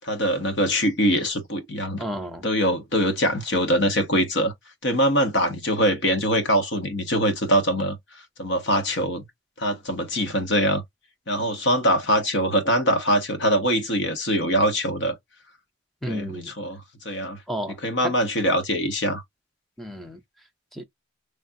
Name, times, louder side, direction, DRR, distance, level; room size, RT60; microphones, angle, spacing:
voice 1, 0.0-2.0 2.4-4.5 4.8-8.0 8.4-9.2 9.6-10.8 11.3-15.2 16.1-17.4 17.8-19.2, equal, 55° left, 0.9 m, -23 dB
voice 2, 2.0-2.4 16.0-16.5 17.5-17.8 18.0-18.1 19.8-20.2 20.7-20.8, equal, ahead, 0.6 m, -31 dB
3.3 x 2.3 x 2.6 m
head